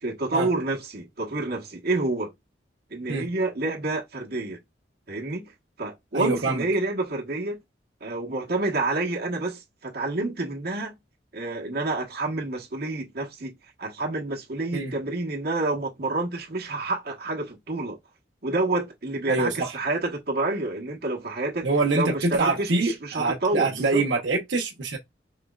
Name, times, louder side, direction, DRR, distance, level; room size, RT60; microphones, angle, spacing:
voice 1, 0.0-2.3 2.9-4.6 5.1-5.5 5.8-7.6 8.0-10.9 11.3-18.0 18.4-21.7 21.9-24.0, right 2 dB, 55° right, 1.1 m, -28 dB
voice 2, 6.1-6.6 14.7-14.9 19.3-19.7 21.6-25.0, right 3 dB, 85° right, 0.9 m, -25 dB
5.0 x 3.1 x 2.3 m
head